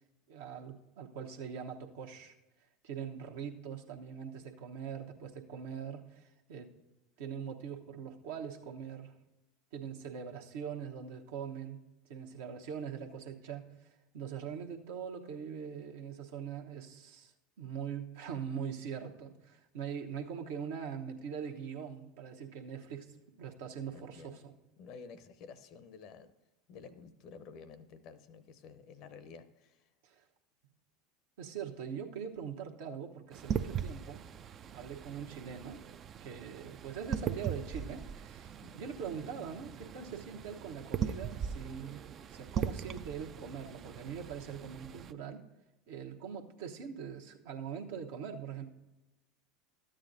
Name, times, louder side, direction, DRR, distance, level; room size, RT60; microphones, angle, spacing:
voice 1, 0.3-2.4 2.8-6.7 7.2-9.1 9.7-11.8 12.1-24.5 30.0-30.2 31.4-34.2 34.7-35.8 36.2-45.5 45.9-48.6, right 7 dB, 65° right, 3 dB, 0.9 m, -42 dB
voice 2, 23.9-24.4 24.8-26.3 26.7-29.9 38.5-38.8, left 5 dB, 50° left, 13 dB, 0.7 m, -52 dB
sound 1, 33.3-45.1, right 8 dB, 35° right, 0.4 m, -40 dB
13.0 x 8.7 x 2.6 m, 0.97 s
hypercardioid pair, 80°, 0 cm